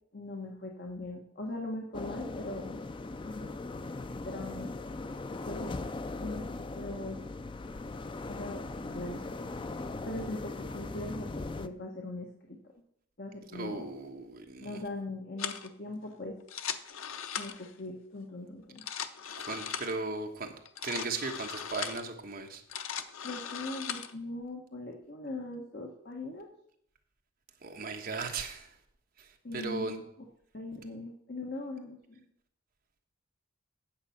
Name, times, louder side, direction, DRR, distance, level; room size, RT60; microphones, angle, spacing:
voice 1, 0.1-2.8 3.2-3.5 4.2-4.7 5.5-5.7 6.2-7.2 8.3-9.5 10.1-12.6 13.2-13.8 14.6-16.4 17.3-18.8 23.2-26.5 29.4-30.0 30.5-32.3, left 2 dB, 50° left, 1 dB, 1.3 m, -40 dB
sound 1, 1.9-11.7, left 2 dB, 25° left, 0.4 m, -39 dB
voice 2, 13.5-14.8 19.4-20.5 20.8-22.6 27.6-28.8 29.2-30.0, right 3 dB, 45° right, 4 dB, 1.3 m, -37 dB
sound 2, 15.4-15.7 16.4-17.7 18.6-20.0 20.7-22.1 22.5-24.1, left 8 dB, 80° left, 0.7 m, -38 dB
8.9 x 7.5 x 5.8 m, 0.70 s
head